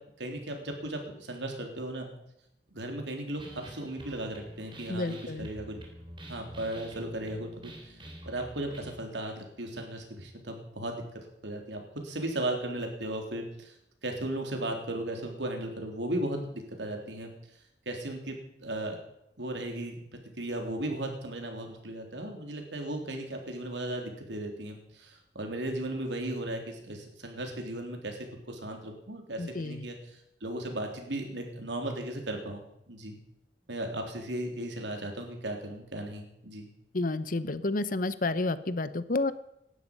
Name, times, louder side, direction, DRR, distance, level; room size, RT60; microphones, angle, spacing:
voice 1, 0.2-2.1 2.7-5.8 6.3-7.7 8.2-11.0 11.4-13.7 14.0-17.3 17.9-19.0 19.4-20.0 20.4-32.6 32.9-33.2 33.7-36.6, right 1 dB, 90° right, 3 dB, 3.6 m, -36 dB
sound 1, 3.4-8.9, right 1 dB, 30° right, 3.4 m, -46 dB
voice 2, 4.9-5.5 29.4-29.9 36.9-39.3, left 2 dB, 50° left, 15 dB, 0.9 m, -30 dB
18.0 x 12.5 x 5.4 m, 0.80 s
head